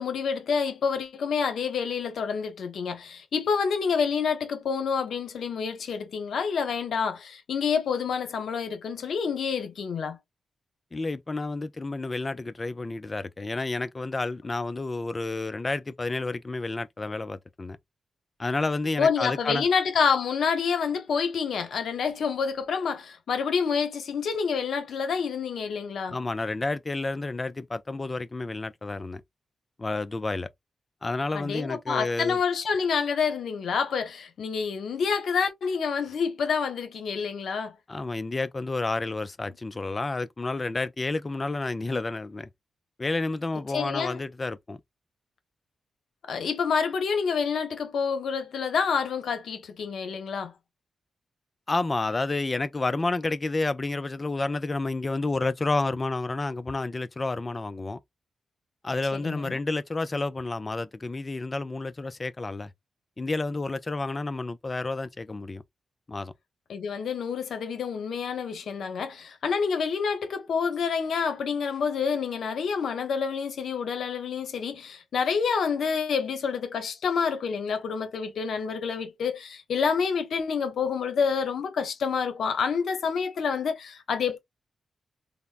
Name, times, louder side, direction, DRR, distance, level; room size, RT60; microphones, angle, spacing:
voice 1, 0.0-10.2 19.0-26.2 31.3-37.8 43.7-44.2 46.3-50.5 59.1-59.6 66.7-84.4, left 6 dB, 80° left, 0.7 m, -28 dB
voice 2, 10.9-17.8 18.4-19.7 26.1-29.2 29.8-30.5 31.0-32.4 37.9-42.5 43.0-44.8 51.7-58.0 58.8-62.7 63.2-65.6 66.1-66.3, left 3 dB, 25° left, 0.3 m, -30 dB
3.4 x 2.0 x 2.4 m
wide cardioid pair, 120°, 0 cm